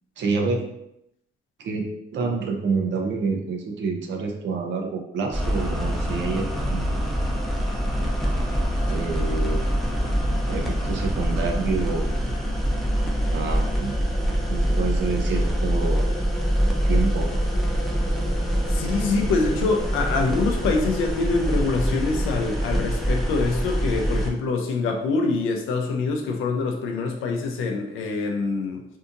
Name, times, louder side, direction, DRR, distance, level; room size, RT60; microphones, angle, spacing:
voice 1, 0.2-0.6 1.6-6.9 8.9-9.6 10.5-12.1 13.3-14.0 14.5-16.3 16.9-17.3, right 4 dB, 65° right, 3 dB, 0.6 m, -28 dB
sound 1, 5.3-24.3, equal, ahead, 0.5 m, -24 dB
voice 2, 18.7-28.9, left 3 dB, 85° left, 3 dB, 0.5 m, -25 dB
2.7 x 2.5 x 2.5 m, 0.81 s
cardioid pair, 90°, 20 cm